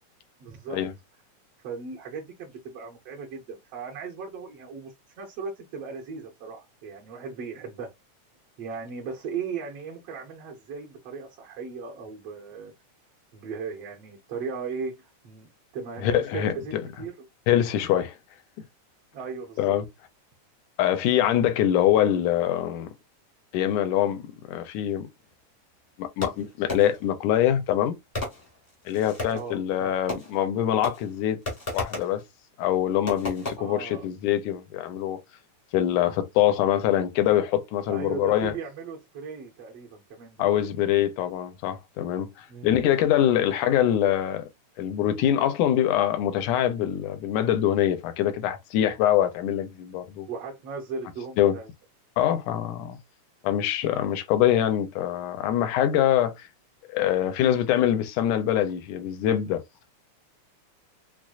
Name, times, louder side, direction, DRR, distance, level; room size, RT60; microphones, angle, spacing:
voice 1, 0.4-0.8 1.6-7.9 8.6-12.7 13.3-17.1 19.1-19.7 29.3-30.0 33.6-34.1 37.9-40.6 42.5-42.7 50.3-51.7 52.5-52.7, right 5 dB, 65° right, 1.7 m, -37 dB
voice 2, 16.0-16.8 17.5-18.2 19.6-19.8 20.8-22.9 23.5-25.1 26.0-28.0 28.9-31.4 31.7-32.2 32.6-35.2 35.7-38.5 40.4-42.3 42.6-44.5 44.8-50.3 51.4-51.6 52.2-53.0 53.4-56.5 56.9-59.6, left 11 dB, 80° left, 2.0 m, -24 dB
Fireworks, 26.2-27.2 28.1-29.5 30.1-30.6 30.8-32.2 33.1-33.6, left 2 dB, 30° left, 0.6 m, -34 dB
6.1 x 2.1 x 2.4 m
omnidirectional pair, 3.6 m